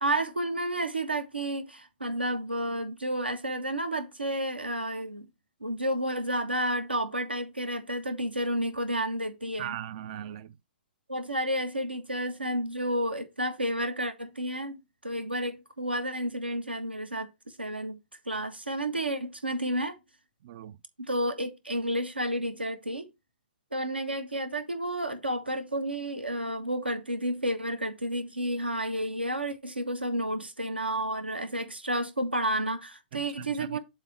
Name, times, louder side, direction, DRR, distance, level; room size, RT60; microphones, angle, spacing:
voice 1, 0.0-5.3 5.6-9.7 11.1-14.8 15.0-17.3 17.6-18.0 18.2-20.0 21.0-23.1 23.7-33.8, right 1 dB, 90° right, 1.6 m, -31 dB
voice 2, 9.6-10.6 20.4-20.8 33.1-33.8, right 11 dB, 40° right, 0.4 m, -39 dB
7.4 x 3.4 x 5.9 m
figure-of-eight pair, 120°, 5 cm